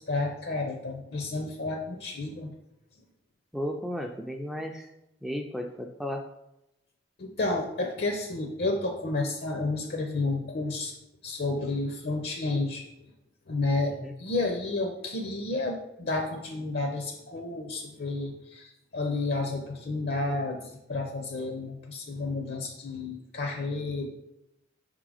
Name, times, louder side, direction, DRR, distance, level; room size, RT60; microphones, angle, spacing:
voice 1, 0.0-2.5 7.2-11.0 11.2-12.9 13.5-13.9 14.2-24.1, left 2 dB, 55° left, 2 dB, 0.6 m, -31 dB
voice 2, 3.5-4.9 5.2-6.3 14.0-14.1, equal, ahead, 3 dB, 0.3 m, -34 dB
5.7 x 3.7 x 4.8 m, 0.88 s
head